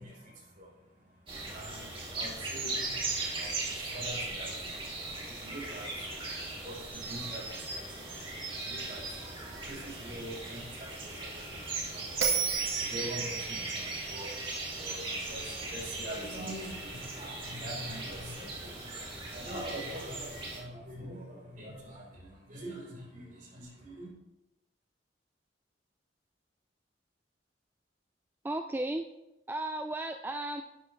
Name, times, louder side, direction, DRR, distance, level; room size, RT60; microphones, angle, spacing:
voice 1, 0.0-24.1, equal, 50° right, -3 dB, 4.1 m, -45 dB
sound 1, 1.3-20.6, right 2 dB, 30° right, 2.3 m, -38 dB
Bell, 12.2-15.5, right 7 dB, 70° right, 1.5 m, -34 dB
voice 2, 28.4-29.1 29.5-30.6, right 1 dB, 10° right, 6 dB, 0.3 m, -34 dB
11.5 x 8.4 x 3.2 m, 0.93 s
head